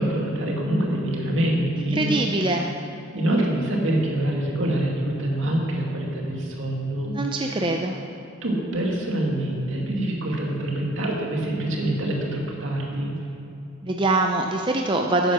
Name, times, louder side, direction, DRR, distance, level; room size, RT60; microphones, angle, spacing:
voice 1, 0.0-2.4 3.1-7.6 8.4-13.2, right 1 dB, 70° right, -1 dB, 2.1 m, -25 dB
voice 2, 2.0-2.7 7.1-8.0 13.8-15.3, right 2 dB, 25° right, 2 dB, 0.5 m, -23 dB
11.5 x 9.2 x 6.1 m, 2.6 s
head